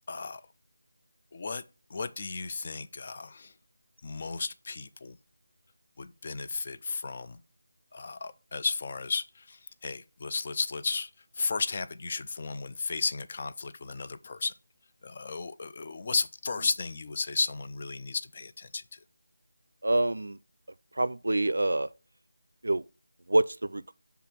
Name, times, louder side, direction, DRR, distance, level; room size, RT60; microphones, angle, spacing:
voice 1, 0.1-0.4 1.3-1.6 1.9-3.5 4.0-5.2 6.0-7.4 7.9-11.1 11.3-14.5 15.0-19.0, left 4 dB, 35° left, 0.5 m, -34 dB
voice 2, 19.8-20.4 20.9-21.9 22.6-22.8 23.3-23.9, right 2 dB, 80° right, 0.4 m, -26 dB
6.7 x 3.5 x 5.8 m
figure-of-eight pair, 170°, 0 cm